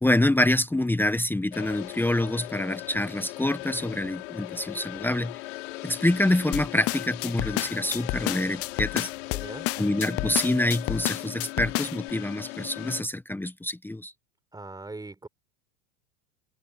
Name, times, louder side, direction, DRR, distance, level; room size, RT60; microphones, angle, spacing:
voice 1, 0.0-5.4 5.8-9.1 9.8-14.1, left 1 dB, 5° left, 1.2 m, -26 dB
sound 1, 1.5-13.0, left 20 dB, 70° left, 6.2 m, -38 dB
sound 2, 6.5-12.1, left 19 dB, 40° left, 0.6 m, -30 dB
voice 2, 9.3-9.7 14.5-15.3, right 2 dB, 10° right, 5.6 m, -40 dB
hypercardioid pair, 95°, 38 cm